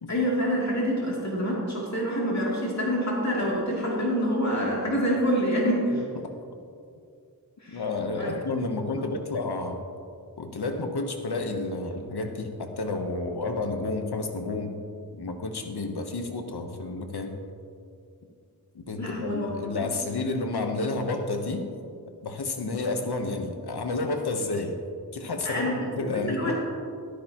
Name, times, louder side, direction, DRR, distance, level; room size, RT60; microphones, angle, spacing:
voice 1, 0.1-6.0 7.6-7.8 8.2-8.3 19.0-19.5 19.8-19.9 25.4-25.9 26.3-26.5, equal, 45° left, -5 dB, 2.9 m, -26 dB
voice 2, 5.9-6.3 7.7-9.8 10.4-14.8 15.2-17.4 18.7-21.7 22.2-24.8 25.1-26.5, left 3 dB, 80° left, 5 dB, 1.1 m, -30 dB
13.0 x 13.0 x 3.0 m, 2.4 s
wide cardioid pair, 55°, 38 cm